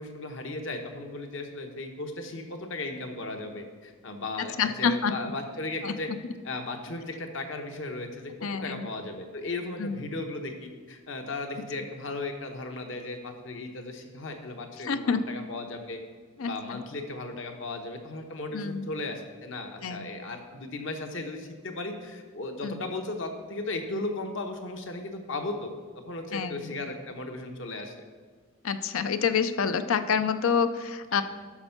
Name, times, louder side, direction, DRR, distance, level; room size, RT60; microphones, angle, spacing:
voice 1, 0.0-6.1 6.4-16.0 16.4-25.7 26.1-27.9 31.1-31.2, left 2 dB, 60° left, 4 dB, 1.1 m, -36 dB
voice 2, 4.4-5.1 5.8-5.9 8.4-8.9 9.8-10.0 14.8-15.2 16.4-16.8 18.5-18.9 19.8-20.1 22.6-22.8 26.3-26.8 28.6-31.2, left 6 dB, 75° left, 11 dB, 0.5 m, -28 dB
12.0 x 4.5 x 5.9 m, 1.5 s
head